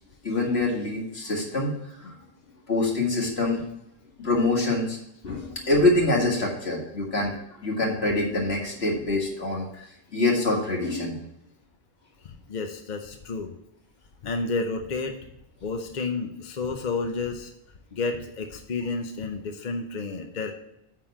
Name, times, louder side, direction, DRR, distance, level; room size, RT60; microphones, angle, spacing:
voice 1, 0.2-2.1 2.7-3.6 4.2-5.0 5.2-7.3 7.6-11.2, left 2 dB, 80° left, -2 dB, 2.3 m, -25 dB
voice 2, 12.2-13.5 14.2-15.2 15.6-17.5 17.9-20.5, left 3 dB, 50° left, 5 dB, 0.8 m, -31 dB
9.4 x 3.7 x 7.1 m, 0.83 s
omnidirectional pair, 1.0 m